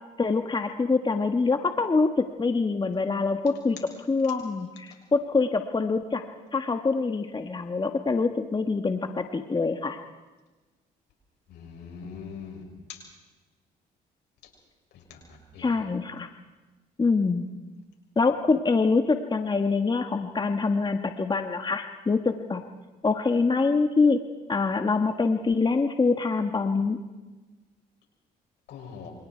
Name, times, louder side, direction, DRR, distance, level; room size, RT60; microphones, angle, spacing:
voice 1, 0.2-3.8 4.1-6.2 6.5-10.0 15.6-16.3 17.0-17.5 18.1-22.6 23.0-24.2 24.5-27.0, left 4 dB, 25° left, 6 dB, 1.6 m, -25 dB
voice 2, 11.5-12.6 12.9-13.0 14.9-15.2 15.5-15.7 28.7-29.1, left 6 dB, 80° left, 1 dB, 7.1 m, -41 dB
28.5 x 26.5 x 4.7 m, 1.2 s
cardioid pair, 80°, 18 cm